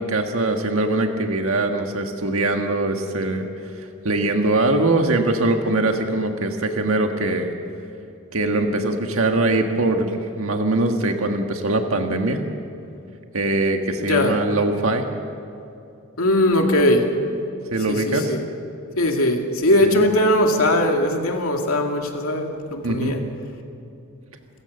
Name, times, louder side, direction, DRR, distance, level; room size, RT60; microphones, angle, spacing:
voice 1, 0.0-3.5 3.8-7.6 8.3-12.4 13.3-15.1 17.7-18.4 19.8-20.0 22.8-23.2, right 2 dB, 75° right, 4 dB, 1.5 m, -22 dB
voice 2, 14.0-14.4 16.2-17.1 17.9-18.4 19.0-23.2, left 1 dB, 80° left, 3 dB, 2.4 m, -20 dB
27.5 x 14.5 x 6.8 m, 2.7 s
head